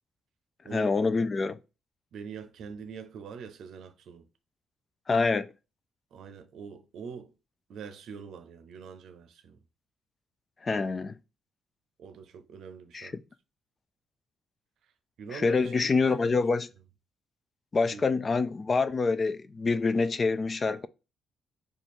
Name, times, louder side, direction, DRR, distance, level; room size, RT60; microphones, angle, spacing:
voice 1, 0.7-1.6 5.1-5.5 10.6-11.1 12.9-13.2 15.3-16.7 17.7-20.9, left 4 dB, 35° left, 0.3 m, -26 dB
voice 2, 2.1-4.2 6.1-7.3 7.7-9.6 12.0-13.1 15.2-15.9 16.3-16.4 17.8-18.1, right 6 dB, 70° right, 0.6 m, -44 dB
3.0 x 2.4 x 4.2 m
cardioid pair, 90°, 0 cm